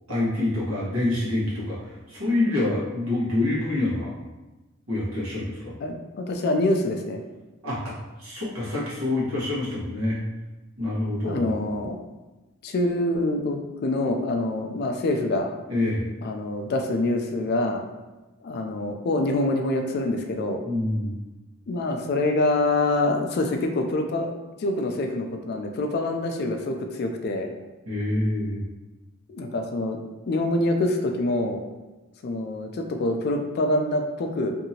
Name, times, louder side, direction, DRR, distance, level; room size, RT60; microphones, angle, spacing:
voice 1, 0.1-4.1 4.9-5.7 7.6-7.9 8.2-10.2 10.8-11.5 15.7-16.0 20.6-21.1 27.9-28.6, left 2 dB, 80° right, -7 dB, 1.2 m, -26 dB
voice 2, 5.8-7.2 11.2-12.0 12.6-15.5 16.2-17.8 18.4-20.6 21.7-24.3 24.6-27.5 29.3-30.0 30.3-31.6 32.2-34.5, left 2 dB, 50° left, 4 dB, 0.3 m, -25 dB
2.8 x 2.6 x 2.7 m, 1.1 s
head